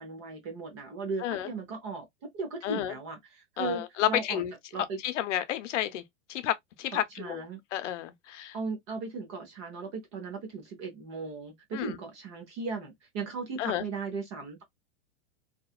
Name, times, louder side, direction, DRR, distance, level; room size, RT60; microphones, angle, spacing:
voice 1, 0.0-2.1 2.3-4.4 4.7-5.0 6.9-7.6 8.5-14.6, right 4 dB, 25° right, 0.5 m, -37 dB
voice 2, 2.6-2.9 3.6-4.5 5.0-6.0 6.3-7.4 7.7-8.5 11.7-12.0 13.6-13.8, left 12 dB, 85° left, 0.6 m, -31 dB
2.8 x 2.2 x 2.3 m
supercardioid pair, 175°, 35 cm